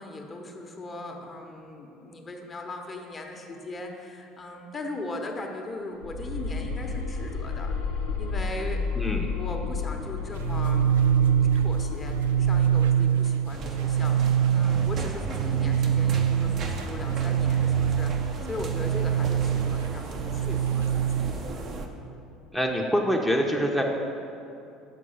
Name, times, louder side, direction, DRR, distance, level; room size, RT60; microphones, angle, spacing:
voice 1, 0.0-7.7 8.2-8.8 9.3-21.0 21.7-21.9, left 2 dB, 30° left, 3 dB, 0.9 m, -38 dB
sound 1, 6.0-13.2, left 4 dB, 85° left, 0.8 m, -32 dB
sound 2, 10.3-21.3, right 9 dB, 75° right, 0.4 m, -24 dB
sound 3, 13.5-21.9, right 3 dB, 50° right, 0.7 m, -35 dB
voice 2, 22.5-23.8, equal, ahead, 0 dB, 0.7 m, -25 dB
6.6 x 4.6 x 5.7 m, 2.6 s
hypercardioid pair, 70°, 0 cm